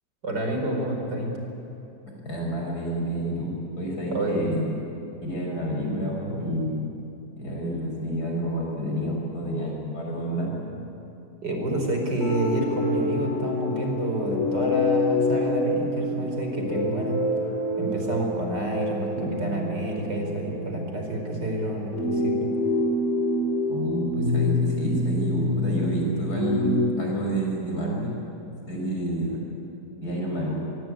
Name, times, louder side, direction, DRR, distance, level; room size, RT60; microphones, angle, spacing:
voice 1, 0.2-1.4 4.1-4.5 11.4-17.2 17.8-22.5, right 1 dB, 85° right, 2 dB, 5.3 m, -28 dB
voice 2, 2.2-4.7 5.2-6.9 7.4-10.6 23.7-28.1 28.7-29.4 30.0-30.5, right 1 dB, 65° left, -1 dB, 6.8 m, -29 dB
sound 1, 12.2-26.8, left 2 dB, 45° left, 6.4 m, -27 dB
25.0 x 22.5 x 9.2 m, 2.8 s
omnidirectional pair, 1.8 m